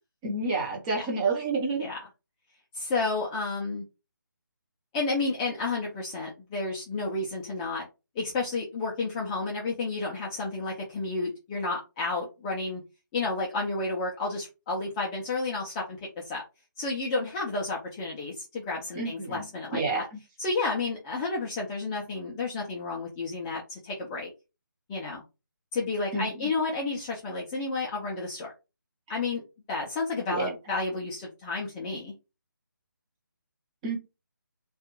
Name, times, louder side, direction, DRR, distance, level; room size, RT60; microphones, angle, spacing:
voice 1, 0.2-1.9 18.9-19.5 19.7-20.0 26.1-26.5 29.1-29.2 30.3-30.4 33.8-34.0, right 3 dB, 20° right, -1 dB, 0.7 m, -29 dB
voice 2, 2.7-3.8 4.9-7.9 8.2-12.8 13.1-16.0 16.3-16.4 16.8-20.0 20.4-24.3 24.9-25.2 25.7-28.5 29.1-29.4 29.7-32.1, left 3 dB, 10° left, -3 dB, 0.3 m, -31 dB
2.3 x 2.3 x 2.9 m, 0.27 s
figure-of-eight pair, 155°, 11 cm